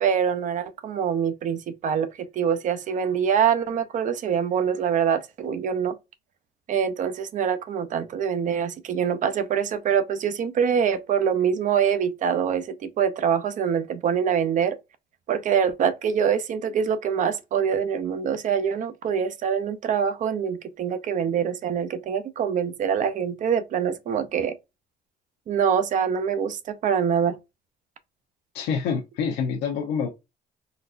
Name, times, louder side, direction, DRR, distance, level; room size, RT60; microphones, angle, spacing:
voice 1, 0.0-5.9 6.7-14.8 15.3-24.6 25.5-27.4, right 7 dB, 50° right, 0.5 m, -24 dB
voice 2, 28.5-30.1, left 6 dB, 85° left, 0.7 m, -26 dB
3.9 x 2.2 x 2.5 m
cardioid pair, 110°, 17 cm